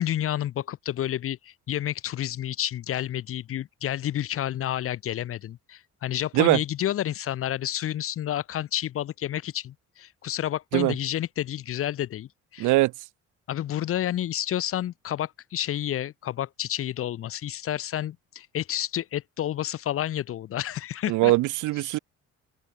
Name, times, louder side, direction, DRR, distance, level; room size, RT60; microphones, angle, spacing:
voice 1, 0.0-12.7 13.5-21.3 21.8-22.0, left 12 dB, 50° left, 0.5 m, -30 dB
voice 2, 12.6-12.9 21.1-22.0, right 19 dB, 80° right, 0.5 m, -21 dB
open air
cardioid pair, 90°, 30 cm